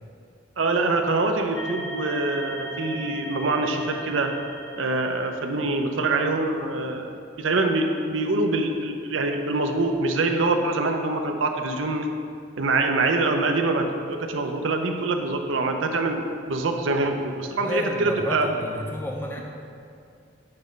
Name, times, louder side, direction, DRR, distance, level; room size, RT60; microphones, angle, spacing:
voice 1, 0.6-4.3 4.8-12.1 12.6-16.2 16.5-18.5, right 2 dB, 80° right, 5 dB, 0.6 m, -24 dB
sound 1, 1.5-5.8, equal, 75° left, 0.8 m, -37 dB
voice 2, 17.6-19.4, left 1 dB, 10° left, -1 dB, 0.6 m, -31 dB
8.7 x 3.1 x 5.1 m, 2.4 s
head